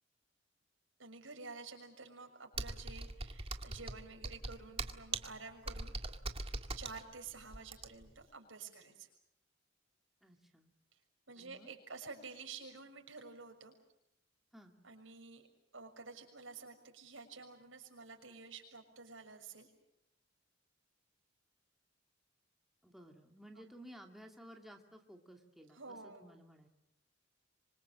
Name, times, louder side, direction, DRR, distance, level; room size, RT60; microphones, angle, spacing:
voice 1, 1.0-6.0 6.7-9.1 10.9-11.0 11.3-13.8 14.8-15.5 15.7-19.7 25.7-26.2, right 4 dB, 80° right, 3 dB, 6.4 m, -50 dB
Computer keyboard, 2.5-8.2, right 3 dB, 30° right, 1.8 m, -41 dB
voice 2, 10.2-10.7 11.4-11.7 14.5-14.8 22.8-26.7, equal, ahead, 2 dB, 2.5 m, -56 dB
26.0 x 25.5 x 7.6 m, 0.77 s
head